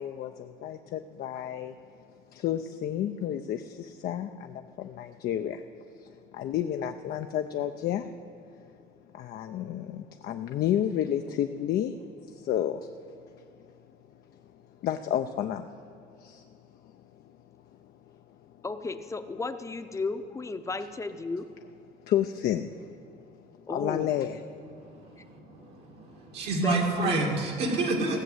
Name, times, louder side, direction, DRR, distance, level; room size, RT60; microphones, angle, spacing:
voice 1, 0.0-1.8 2.3-5.6 6.0-8.1 9.1-12.0 12.3-12.9 14.8-16.4 22.1-22.9 23.7-24.4, left 10 dB, 65° left, 6 dB, 0.5 m, -31 dB
voice 2, 18.6-21.5 23.7-24.1 26.6-27.2, left 3 dB, 15° left, 9 dB, 0.7 m, -34 dB
voice 3, 25.6-28.2, right 2 dB, 75° right, -1 dB, 2.3 m, -28 dB
17.0 x 6.4 x 7.9 m, 2.7 s
cardioid pair, 110°, 17 cm